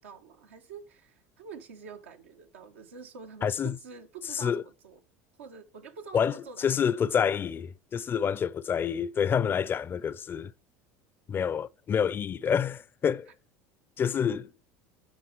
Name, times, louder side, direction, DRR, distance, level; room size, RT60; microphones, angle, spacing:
voice 1, 0.0-5.0 5.4-7.1 13.3-13.4, right 5 dB, 90° right, 1.3 m, -47 dB
voice 2, 3.4-3.7 4.4-4.6 6.1-6.3 6.6-10.5 11.3-13.3 14.0-14.5, left 7 dB, 35° left, 0.5 m, -27 dB
8.8 x 5.1 x 4.6 m
hypercardioid pair, 85°, 7 cm